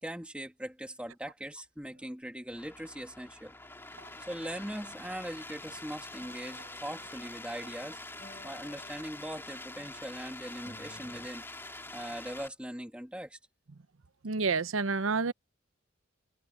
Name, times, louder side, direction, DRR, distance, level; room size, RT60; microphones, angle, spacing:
voice 1, 0.0-3.5 4.3-8.0 8.4-11.4 11.9-13.4, equal, 5° right, 2.4 m, -40 dB
sound 1, 2.5-12.5, left 2 dB, 10° left, 3.1 m, -46 dB
sound 2, 4.9-9.9 10.4-11.3, left 1 dB, 35° left, 3.9 m, -56 dB
voice 2, 14.2-15.3, right 4 dB, 75° right, 0.8 m, -29 dB
head